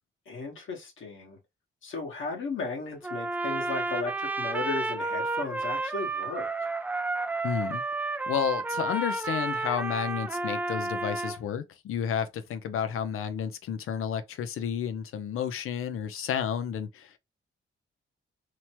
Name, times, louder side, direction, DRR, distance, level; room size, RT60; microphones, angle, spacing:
voice 1, 0.3-1.4 1.8-6.7, left 3 dB, 65° left, 1.3 m, -35 dB
Trumpet, 3.0-11.4, right 3 dB, 10° right, 0.3 m, -31 dB
voice 2, 7.4-7.8 8.3-17.2, left 8 dB, 85° left, 0.6 m, -31 dB
3.0 x 2.1 x 2.9 m
cardioid pair, 105°, 21 cm